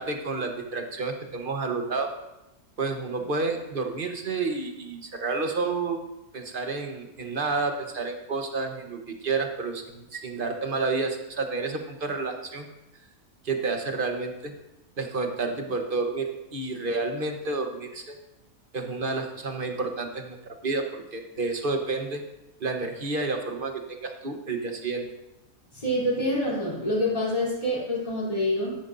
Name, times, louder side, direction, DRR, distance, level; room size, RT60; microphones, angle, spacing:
voice 1, 0.0-2.1 2.8-6.0 6.3-12.7 13.4-14.5 15.0-18.2 18.7-22.2 22.6-25.1, right 3 dB, 40° right, 4 dB, 1.1 m, -30 dB
voice 2, 25.7-28.8, left 1 dB, 25° left, -6 dB, 3.2 m, -26 dB
13.0 x 10.5 x 2.6 m, 0.94 s
omnidirectional pair, 1.5 m